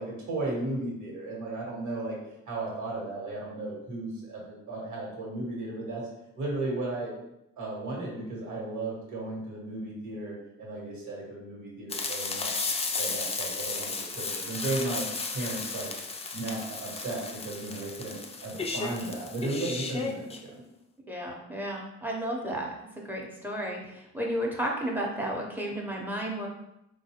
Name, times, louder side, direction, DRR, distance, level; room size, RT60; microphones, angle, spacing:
voice 1, 0.0-2.1 2.5-6.0 6.4-7.1 7.6-12.5 13.0-15.0 15.3-15.9 16.3-20.6, right 2 dB, 80° right, -4 dB, 1.3 m, -35 dB
sound 1, 11.9-20.4, left 4 dB, 20° left, 0.4 m, -34 dB
voice 2, 21.1-22.7 23.0-26.5, right 1 dB, 5° right, -1 dB, 0.7 m, -32 dB
3.8 x 2.3 x 2.8 m, 0.83 s
cardioid pair, 90°, 30 cm